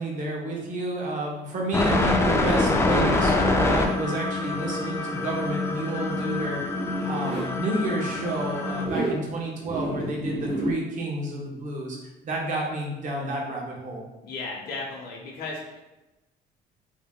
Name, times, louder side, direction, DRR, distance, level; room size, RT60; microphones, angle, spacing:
voice 1, 0.0-6.6 7.0-12.0 12.2-14.0, right 2 dB, 50° right, -1 dB, 0.9 m, -30 dB
sound 1, 1.7-8.9, left 2 dB, 15° left, 0.4 m, -25 dB
Zipper (clothing), 6.0-7.5 8.8-9.2 9.6-10.7, right 1 dB, 70° right, 1.2 m, -31 dB
voice 2, 14.2-15.8, left 3 dB, 65° left, -2 dB, 0.7 m, -35 dB
2.7 x 2.1 x 3.6 m, 1.0 s
cardioid pair, 110°, 17 cm